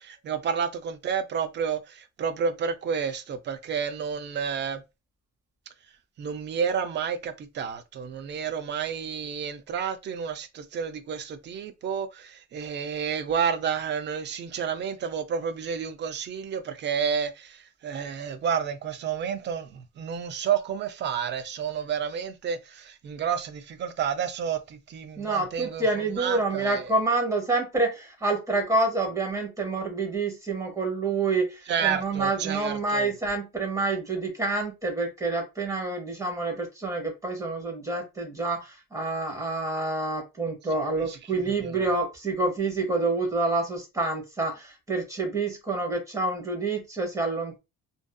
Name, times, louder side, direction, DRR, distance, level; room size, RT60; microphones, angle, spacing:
voice 1, 0.0-4.8 6.2-25.8 26.2-26.9 31.7-33.1 41.1-41.2 41.4-41.9, right 7 dB, 35° right, 0.4 m, -30 dB
voice 2, 25.2-47.6, right 3 dB, 10° right, 0.9 m, -28 dB
2.5 x 2.4 x 2.2 m
cardioid pair, 155°, 30 cm